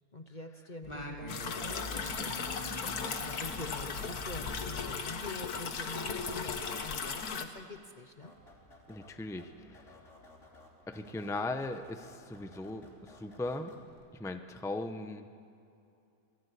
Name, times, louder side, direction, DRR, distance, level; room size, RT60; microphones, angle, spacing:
voice 1, 0.1-8.3, left 2 dB, 35° left, 7 dB, 1.0 m, -45 dB
Singing, 0.8-5.6, left 1 dB, 20° left, 2.7 m, -45 dB
sound 1, 1.3-7.4, left 5 dB, 80° left, 1.9 m, -37 dB
sound 2, 8.2-14.1, left 1 dB, 50° left, 3.7 m, -57 dB
voice 2, 8.9-9.9 10.9-13.7 14.2-15.3, left 2 dB, ahead, 7 dB, 0.9 m, -38 dB
27.5 x 18.5 x 8.4 m, 2.6 s
omnidirectional pair, 1.6 m